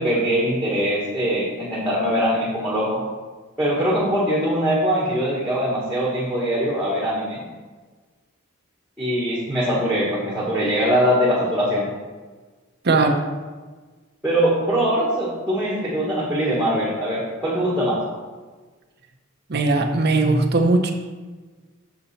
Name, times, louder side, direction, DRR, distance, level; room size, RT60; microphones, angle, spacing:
voice 1, 0.0-3.0 3.6-7.4 9.0-11.9 14.2-18.0, equal, 5° right, -5 dB, 1.4 m, -22 dB
voice 2, 12.8-13.2 19.5-20.9, right 3 dB, 50° right, 2 dB, 0.7 m, -18 dB
6.9 x 6.6 x 4.2 m, 1.4 s
head